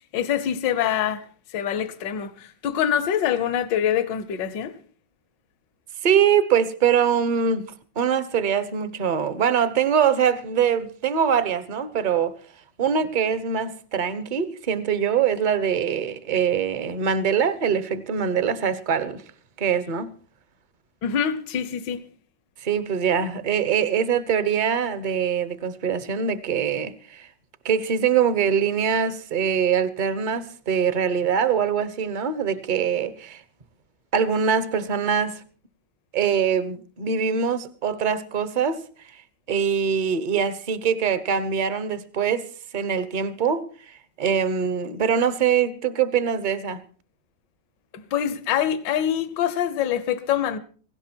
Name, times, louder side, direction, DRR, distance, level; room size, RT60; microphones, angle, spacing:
voice 1, 0.1-1.2 1.5-4.8 21.0-22.0 47.9-50.6, left 9 dB, 75° left, 1.6 m, -25 dB
voice 2, 6.0-12.4 12.8-19.2 19.6-20.1 22.6-27.3 27.6-33.4 34.1-35.4 36.1-38.8 39.5-42.5 42.7-43.6 44.2-46.8, right 7 dB, 35° right, 0.8 m, -23 dB
17.5 x 16.5 x 4.5 m
omnidirectional pair, 2.0 m